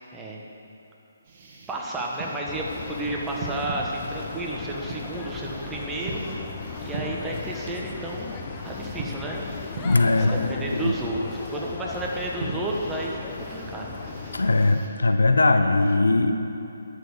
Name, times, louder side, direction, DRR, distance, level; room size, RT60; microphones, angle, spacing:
sound 1, 1.2-14.9, right 3 dB, 40° right, 1.7 m, -41 dB
voice 1, 1.7-6.4 6.8-8.3 8.6-9.5 10.1-13.9, right 2 dB, 10° right, -2 dB, 1.3 m, -32 dB
sound 2, 2.5-14.8, left 4 dB, 30° left, 0.9 m, -37 dB
voice 2, 9.8-10.9 14.3-16.4, left 2 dB, 75° left, 7 dB, 0.7 m, -20 dB
11.0 x 6.6 x 6.9 m, 2.7 s
figure-of-eight pair, 140°, 0 cm